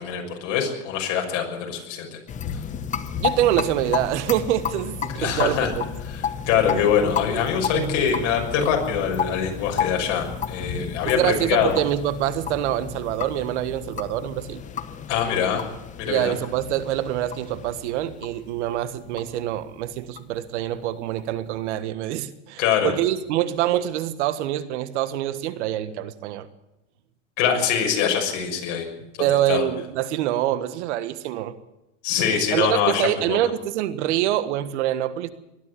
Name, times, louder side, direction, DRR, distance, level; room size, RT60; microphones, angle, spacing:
voice 1, 0.0-2.2 2.5-2.6 5.1-5.7 6.0-11.8 15.1-15.6 16.0-16.3 22.6-22.9 27.4-28.9 29.2-29.7 32.0-33.4, left 7 dB, 50° left, 2 dB, 6.5 m, -24 dB
sound 1, 2.3-21.5, left 7 dB, 20° left, 1.0 m, -32 dB
voice 2, 3.2-5.8 6.7-6.8 7.7-7.9 11.0-14.6 16.1-26.5 29.2-31.5 32.5-35.3, right 12 dB, 65° right, 13 dB, 1.5 m, -25 dB
20.5 x 13.0 x 9.9 m, 0.93 s
supercardioid pair, 145°, 38 cm